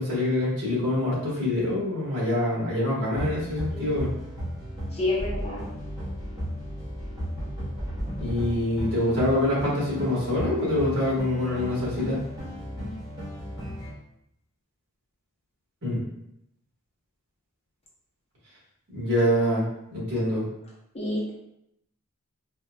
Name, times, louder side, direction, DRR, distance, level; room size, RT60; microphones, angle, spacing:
voice 1, 0.0-4.1 8.2-12.2 15.8-16.0 18.9-19.6 19.9-20.4, left 1 dB, 55° right, -7 dB, 1.5 m, -25 dB
sound 1, 3.1-13.9, equal, 20° right, 1.0 m, -34 dB
voice 2, 4.9-5.7 20.9-21.3, left 2 dB, 25° left, -6 dB, 0.8 m, -28 dB
4.3 x 2.3 x 2.3 m, 0.79 s
head